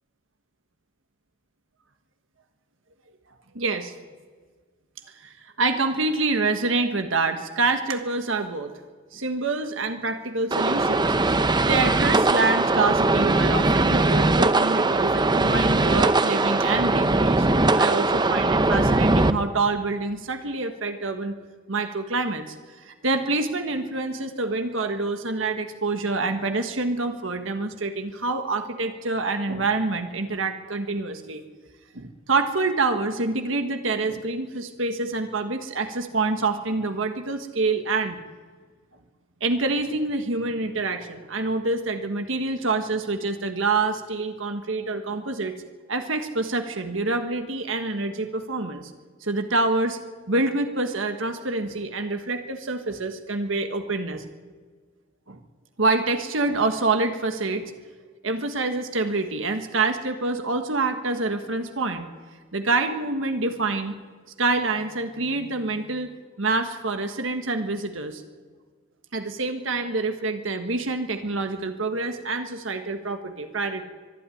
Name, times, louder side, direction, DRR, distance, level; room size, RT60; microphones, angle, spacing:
voice 1, 3.5-3.9 5.1-8.7 9.1-21.4 21.7-22.5 22.8-31.4 31.9-38.2 39.4-45.5 45.9-48.9 49.2-50.0 50.3-54.2 55.3-55.4 55.8-57.8 58.2-64.0 64.4-66.1 66.4-68.2 69.1-73.8, right 3 dB, 70° right, 6 dB, 1.5 m, -26 dB
sound 1, 10.5-19.3, right 2 dB, 20° right, 0.7 m, -20 dB
24.0 x 11.5 x 9.9 m, 1.5 s
head